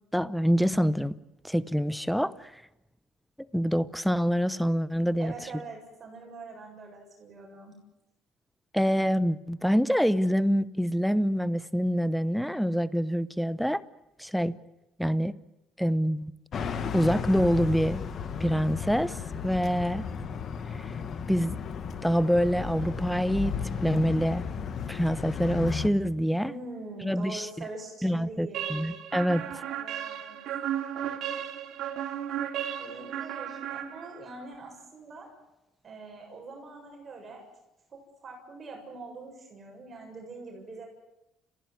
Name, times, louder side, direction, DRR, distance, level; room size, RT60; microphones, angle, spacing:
voice 1, 0.1-1.1 1.4-2.5 3.5-5.3 8.7-13.8 14.2-14.5 15.0-15.3 15.8-16.3 16.9-18.0 18.4-19.2 19.4-20.0 20.7-20.8 21.3-21.6 22.0-23.5 23.8-24.4 24.9-26.5 27.0-27.5 28.0-29.4, equal, ahead, 16 dB, 0.8 m, -26 dB
voice 2, 5.2-7.7 26.3-28.9 29.3-30.4 32.8-35.3 35.8-37.5 37.9-40.9, right 3 dB, 35° right, 1 dB, 7.4 m, -43 dB
sound 1, 16.5-25.9, left 6 dB, 45° left, 1.8 m, -34 dB
sound 2, 28.5-34.4, right 10 dB, 65° right, 3.0 m, -34 dB
29.5 x 16.0 x 9.7 m, 0.92 s
cardioid pair, 110°, 0 cm